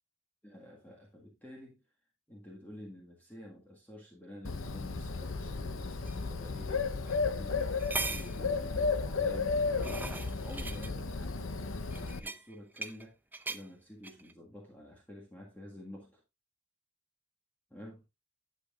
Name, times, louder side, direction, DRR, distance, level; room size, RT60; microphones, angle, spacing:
voice 1, 0.4-1.8 2.3-9.6 10.3-11.5 11.9-13.2 13.5-16.2 17.7-18.0, left 1 dB, 10° left, 1.8 m, -50 dB
Bird, 4.4-12.2, left 4 dB, 85° left, 0.8 m, -33 dB
sound 1, 6.1-6.2 7.1-7.2 7.6-8.4 9.4-10.9 11.9-13.0 13.3-13.6 14.0-14.3, right 3 dB, 10° right, 0.6 m, -39 dB
11.5 x 7.9 x 2.5 m
head